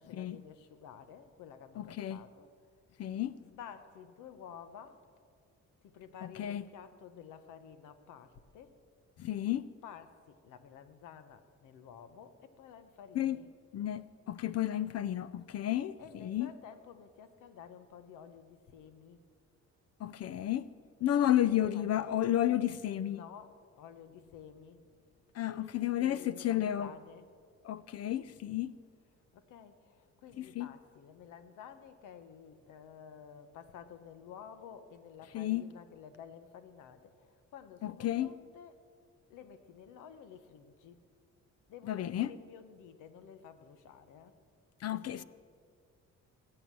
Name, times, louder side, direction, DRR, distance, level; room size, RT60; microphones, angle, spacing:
voice 1, 0.0-2.5 3.1-5.0 5.8-8.8 9.8-13.5 16.0-19.3 20.5-20.7 21.3-22.4 23.1-27.3 27.6-27.7 29.3-38.8 39.3-41.0 41.7-44.4 44.9-45.2, left 7 dB, 90° left, 1.1 m, -52 dB
voice 2, 1.8-2.2 3.0-3.4 6.4-6.6 9.2-9.7 13.2-13.4 13.7-16.5 20.0-20.7 21.0-23.2 25.4-26.9 27.7-28.7 30.4-30.7 35.3-35.6 37.8-38.3 41.9-42.3 44.8-45.2, left 12 dB, 55° left, 0.5 m, -32 dB
19.0 x 8.0 x 7.6 m
cardioid pair, 90°, 30 cm